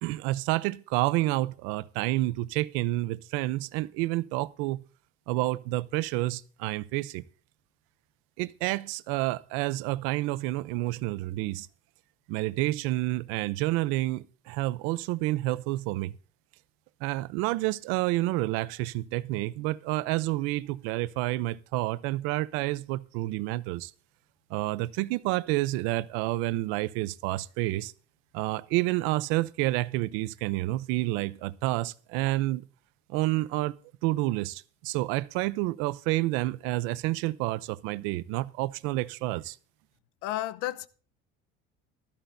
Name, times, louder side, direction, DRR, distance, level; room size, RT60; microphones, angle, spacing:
voice 1, 0.0-4.8 5.3-7.2 8.4-11.7 12.3-16.2 17.0-23.9 24.5-27.9 28.3-32.6 33.1-33.8 34.0-39.6, right 18 dB, 80° right, 0.6 m, -29 dB
voice 2, 40.2-40.9, left 14 dB, 85° left, 0.9 m, -32 dB
15.5 x 13.5 x 2.7 m
cardioid pair, 155°, 21 cm